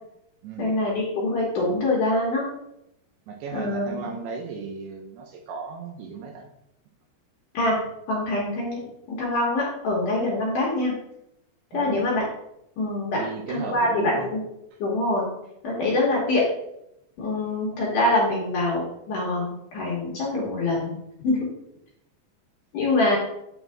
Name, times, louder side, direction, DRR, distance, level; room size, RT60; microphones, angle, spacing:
voice 1, 0.6-2.5 3.5-4.1 7.5-7.8 8.1-8.8 9.1-10.9 11.7-12.2 12.8-14.4 14.8-15.3 15.6-16.4 17.2-21.0 21.2-21.5 22.7-23.2, left 2 dB, 65° left, -4 dB, 2.2 m, -24 dB
voice 2, 3.3-6.5 11.7-12.1 13.1-14.3 15.8-16.0, right 5 dB, 80° right, 3 dB, 2.6 m, -35 dB
9.1 x 3.9 x 3.5 m, 0.82 s
omnidirectional pair, 5.0 m